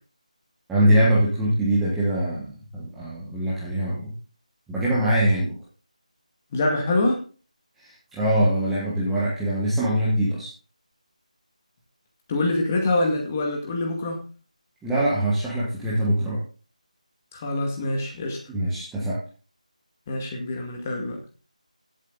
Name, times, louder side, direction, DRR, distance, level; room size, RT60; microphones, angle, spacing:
voice 1, 0.7-4.1 4.7-5.5 8.1-10.5 14.8-16.4 18.5-19.1, right 1 dB, 5° right, -8 dB, 1.3 m, -23 dB
voice 2, 6.5-7.2 12.3-14.2 17.3-18.4 20.1-21.2, left 2 dB, 15° left, 1 dB, 2.1 m, -25 dB
16.0 x 7.6 x 4.0 m, 0.37 s
figure-of-eight pair, 175°, 4 cm